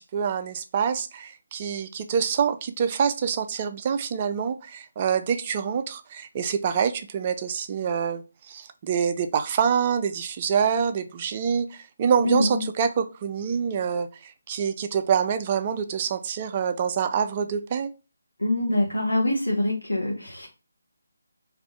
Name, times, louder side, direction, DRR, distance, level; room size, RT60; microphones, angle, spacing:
voice 1, 0.0-17.9, right 7 dB, 30° right, 0.3 m, -26 dB
voice 2, 12.2-12.6 18.4-20.5, left 1 dB, 85° left, 0.9 m, -24 dB
3.4 x 2.5 x 3.5 m
figure-of-eight pair, 150°, 0 cm